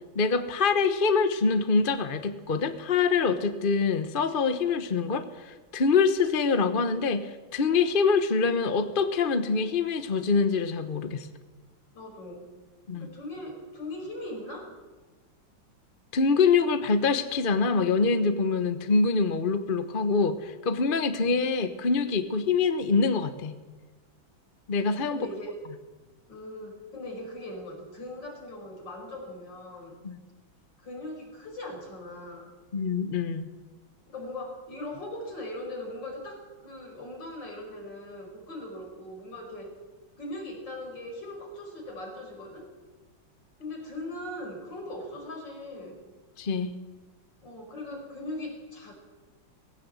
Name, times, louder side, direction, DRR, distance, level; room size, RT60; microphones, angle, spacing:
voice 1, 0.1-11.3 12.9-13.1 16.1-23.5 24.7-25.2 30.0-30.2 32.7-33.5 46.4-46.7, left 4 dB, 35° left, 9 dB, 0.9 m, -25 dB
voice 2, 11.9-12.5 12.9-14.7 25.1-25.6 26.3-30.0 30.8-32.5 34.1-39.8 40.2-42.7 43.6-46.0 47.4-48.9, left 1 dB, 65° left, 1 dB, 5.8 m, -40 dB
19.5 x 16.5 x 8.2 m, 1.3 s
omnidirectional pair, 2.2 m